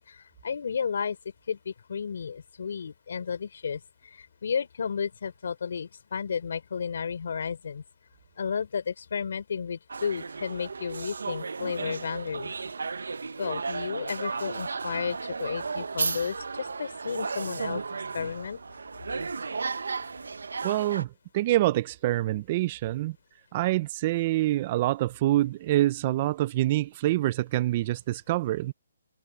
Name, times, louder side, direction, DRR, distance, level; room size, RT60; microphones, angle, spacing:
voice 1, 0.1-1.2 1.5-7.8 8.4-12.5 13.4-17.8 18.1-18.6, left 6 dB, 60° left, 4.1 m, -33 dB
sound 1, 9.9-21.0, right 4 dB, 90° right, 1.2 m, -34 dB
voice 2, 20.6-23.2 23.5-28.7, right 15 dB, 25° right, 0.5 m, -26 dB
hypercardioid pair, 170°, 0 cm